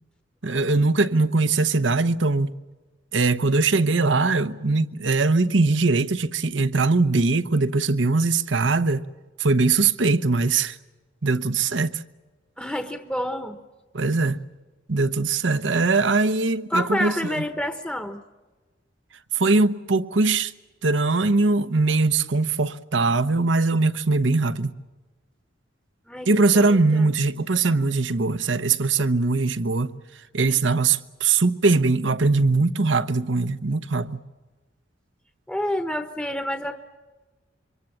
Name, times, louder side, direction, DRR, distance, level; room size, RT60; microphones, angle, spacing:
voice 1, 0.4-2.5 3.1-9.0 9.4-10.8 11.2-12.0 13.9-14.4 14.9-17.4 19.3-20.5 20.8-24.7 26.3-29.9 30.3-34.2, right 3 dB, 75° right, 1.0 m, -21 dB
voice 2, 12.6-13.6 16.7-18.2 26.1-26.3 26.5-27.1 35.5-36.8, equal, 5° left, 1.1 m, -28 dB
27.0 x 24.0 x 7.3 m
head